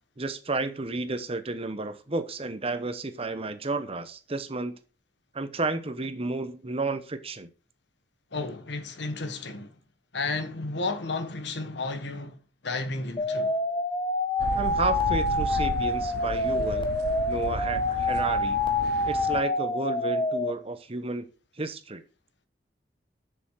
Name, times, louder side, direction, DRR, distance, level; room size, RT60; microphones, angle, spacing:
voice 1, 0.2-4.7 5.3-7.5 14.5-16.9 17.3-18.6 19.0-21.3 21.6-22.0, right 3 dB, 30° right, 1.0 m, -32 dB
voice 2, 8.3-9.7 10.1-12.3 12.6-13.5, left 3 dB, 65° left, 1.3 m, -32 dB
sound 1, 13.2-20.5, left 2 dB, 25° left, 1.5 m, -27 dB
sound 2, 14.4-19.4, right 4 dB, 60° right, 0.4 m, -34 dB
7.0 x 7.0 x 6.3 m
head